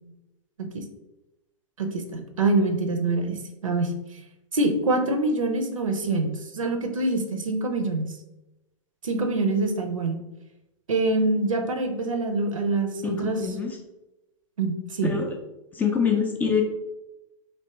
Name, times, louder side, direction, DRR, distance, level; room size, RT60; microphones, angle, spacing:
voice 1, 1.8-4.2 4.5-8.1 9.0-10.2 10.9-13.4 14.6-15.1, right 2 dB, 75° right, 5 dB, 0.6 m, -25 dB
voice 2, 13.0-13.8 15.0-15.3 15.7-16.6, left 6 dB, 10° left, 2 dB, 0.3 m, -25 dB
3.3 x 2.7 x 2.9 m, 0.94 s
figure-of-eight pair, 105°, 17 cm